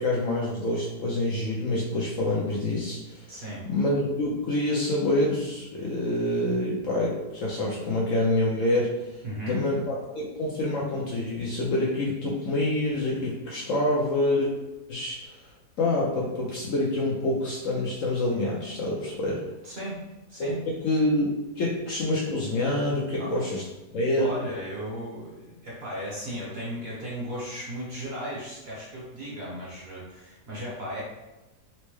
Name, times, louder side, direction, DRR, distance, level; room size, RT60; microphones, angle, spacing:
voice 1, 0.0-9.2 9.5-14.5 14.9-15.5 15.8-19.4 20.4-20.5 20.8-21.3 21.6-23.6 23.9-24.3, left 1 dB, 65° left, -4 dB, 0.9 m, -27 dB
voice 2, 3.3-3.6 9.2-9.6 19.6-20.0 20.3-20.6 23.2-23.3 24.2-31.0, equal, 45° right, -6 dB, 1.0 m, -36 dB
4.4 x 2.1 x 3.0 m, 1.0 s
omnidirectional pair, 1.8 m